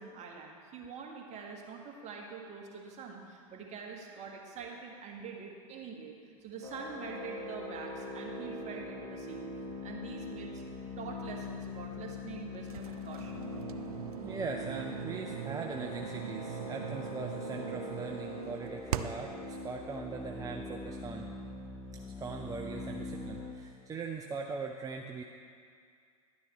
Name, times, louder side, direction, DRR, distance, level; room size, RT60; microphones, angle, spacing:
voice 1, 0.0-6.2 6.4-9.4 9.8-10.6 11.0-13.4, right 5 dB, 40° right, 0 dB, 1.6 m, -45 dB
sound 1, 6.6-23.5, left 2 dB, 15° left, 2.1 m, -42 dB
sound 2, 12.7-19.4, right 10 dB, 80° right, 0.4 m, -41 dB
voice 2, 14.2-21.3 21.9-25.2, right 4 dB, 20° right, 1 dB, 0.5 m, -40 dB
11.0 x 9.6 x 3.2 m, 2.2 s
hypercardioid pair, 90°, 19 cm